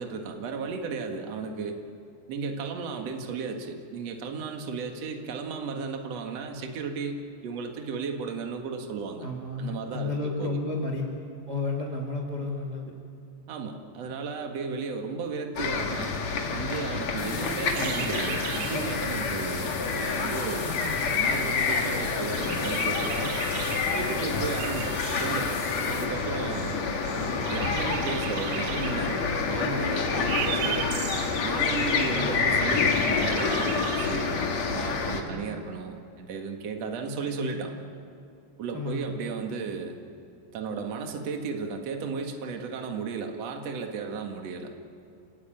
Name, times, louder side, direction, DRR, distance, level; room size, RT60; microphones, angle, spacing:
voice 1, 0.0-1.8 2.3-9.3 9.6-10.6 13.5-16.2 16.5-20.8 21.1-23.3 23.9-25.6 25.9-26.8 27.5-30.9 31.4-34.4 34.6-37.7 38.6-40.0 40.5-44.7, right 5 dB, 55° right, 4 dB, 1.9 m, -34 dB
voice 2, 9.2-11.0 11.5-12.9 17.3-17.4 20.6-20.9 32.0-32.4 35.2-35.4 37.2-37.6 38.7-39.1, left 3 dB, 35° right, 1 dB, 1.6 m, -32 dB
sound 1, 15.6-35.2, left 4 dB, 50° left, 2.1 m, -28 dB
sound 2, 17.2-26.0, left 5 dB, 85° left, 5.7 m, -41 dB
sound 3, 17.7-34.7, right 12 dB, 80° right, 2.4 m, -39 dB
28.0 x 18.0 x 9.1 m, 2.5 s
omnidirectional pair, 5.5 m